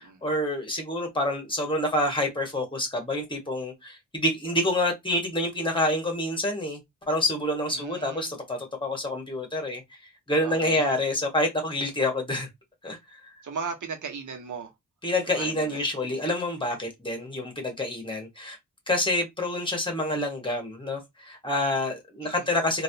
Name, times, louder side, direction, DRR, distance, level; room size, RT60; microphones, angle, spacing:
voice 1, 0.0-6.8 7.1-9.8 10.3-12.5 12.8-13.0 15.0-18.6 18.9-22.8, left 1 dB, 15° left, 1.4 m, -27 dB
voice 2, 7.7-8.3 10.4-10.8 13.4-14.7 15.3-15.9 22.2-22.6, right 5 dB, 70° right, 1.2 m, -37 dB
3.1 x 2.6 x 2.8 m
wide cardioid pair, 75°, 32 cm